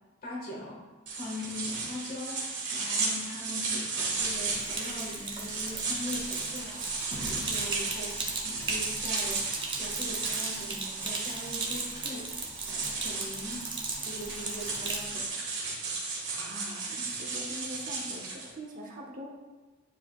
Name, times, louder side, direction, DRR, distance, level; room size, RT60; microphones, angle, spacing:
voice 1, 0.2-0.8 1.1-12.3 12.7-13.6 14.0-15.3, left 1 dB, 45° left, -5 dB, 1.7 m, -41 dB
sound 1, 1.1-18.5, right 4 dB, 55° right, 1.7 m, -35 dB
Sink (filling or washing), 4.2-15.1, right 3 dB, 25° right, 0.7 m, -37 dB
voice 2, 16.2-19.3, equal, 40° right, -2 dB, 1.1 m, -43 dB
9.6 x 4.8 x 2.4 m, 1.3 s
head